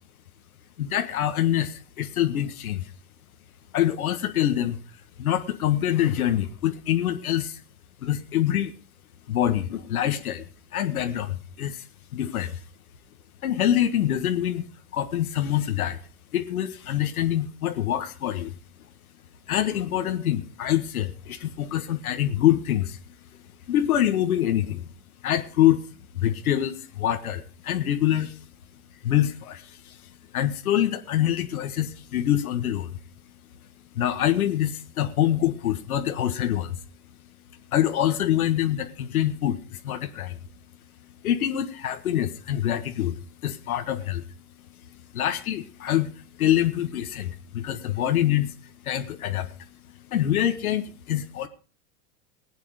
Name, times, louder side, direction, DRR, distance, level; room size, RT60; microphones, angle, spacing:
voice 1, 0.8-2.9 3.7-4.8 5.2-7.6 8.0-8.7 9.3-10.4 10.7-11.8 12.1-12.6 13.4-14.6 14.9-16.0 16.3-18.5 19.5-23.0 23.7-24.8 25.2-25.8 26.1-28.4 29.0-30.0 30.3-32.9 33.9-36.8 37.7-40.4 41.2-43.2 43.4-44.2 45.1-46.1 46.4-48.5 48.8-49.5 50.1-51.5, left 11 dB, 75° left, 7 dB, 1.7 m, -25 dB
19.0 x 9.0 x 5.1 m, 0.36 s
hypercardioid pair, 105°, 44 cm